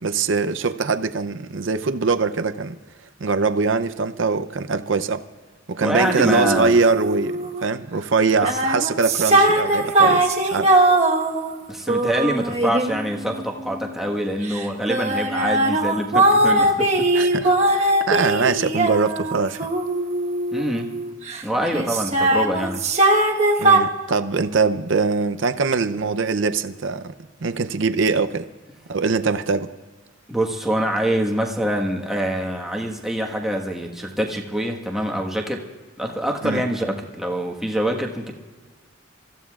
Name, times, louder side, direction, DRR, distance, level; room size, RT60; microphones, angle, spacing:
voice 1, 0.0-2.7 3.2-5.2 5.7-10.7 17.1-19.7 23.6-27.1 27.4-28.5 28.9-29.7 36.4-36.6, right 4 dB, 70° right, 0.6 m, -22 dB
voice 2, 5.8-6.8 11.7-17.1 20.5-20.9 21.4-22.8 30.3-35.6 36.0-38.3, equal, ahead, 1.4 m, -25 dB
sound 1, 6.0-7.6 8.3-13.9 14.5-21.4 21.7-23.8, right 2 dB, 35° right, 1.3 m, -20 dB
28.0 x 15.0 x 2.4 m
head